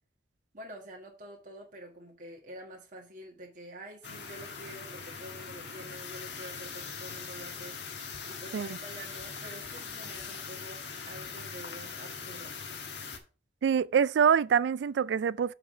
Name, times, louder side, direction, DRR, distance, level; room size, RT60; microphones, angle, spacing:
voice 1, 0.5-7.8 8.3-12.5, right 1 dB, 50° right, 1.6 m, -47 dB
sound 1, 4.0-13.2, left 5 dB, 80° left, 1.4 m, -41 dB
voice 2, 13.6-15.5, right 7 dB, 75° right, 0.3 m, -25 dB
7.1 x 4.8 x 4.9 m
head